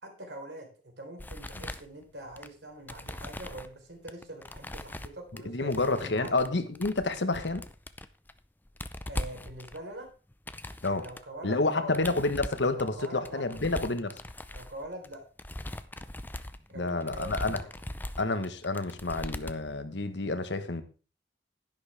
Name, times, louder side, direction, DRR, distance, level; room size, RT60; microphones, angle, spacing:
voice 1, 0.0-6.4 9.1-10.1 10.8-12.0 12.8-13.9 14.5-15.2 16.7-17.7, right 1 dB, 80° right, 4.0 m, -44 dB
sound 1, 1.2-2.5 2.9-3.7 4.1-5.4 5.7-6.5 6.7-8.4 8.7-11.2 11.9-19.7, left 1 dB, 10° left, 0.5 m, -40 dB
voice 2, 5.4-7.7 10.8-11.1 11.4-14.2 16.7-17.6 18.2-20.8, left 3 dB, 80° left, 1.2 m, -29 dB
11.0 x 11.0 x 3.4 m
head